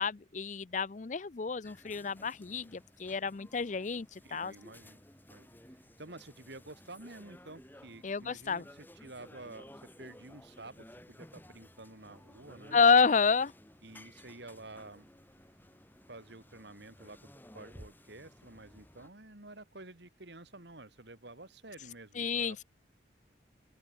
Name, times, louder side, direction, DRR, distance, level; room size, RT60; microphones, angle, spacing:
voice 1, 0.0-4.5 8.0-8.6 12.7-13.5 22.2-22.6, left 5 dB, 40° left, 0.5 m, -29 dB
sound 1, 1.6-19.1, left 1 dB, 10° left, 4.4 m, -56 dB
voice 2, 4.2-5.0 5.3-5.6 6.0-12.8 13.8-15.1 16.1-17.3 17.5-22.6, right 2 dB, 65° right, 2.7 m, -50 dB
open air
head